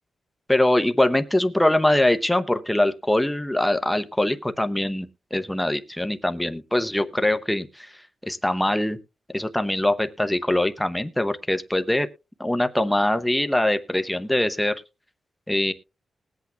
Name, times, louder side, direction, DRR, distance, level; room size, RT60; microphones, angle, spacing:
voice 1, 0.5-7.9 8.3-9.0 9.3-12.1 12.4-14.8 15.5-15.7, left 1 dB, 5° left, 9 dB, 0.7 m, -23 dB
20.0 x 8.2 x 2.2 m, 0.28 s
wide cardioid pair, 135°, 0 cm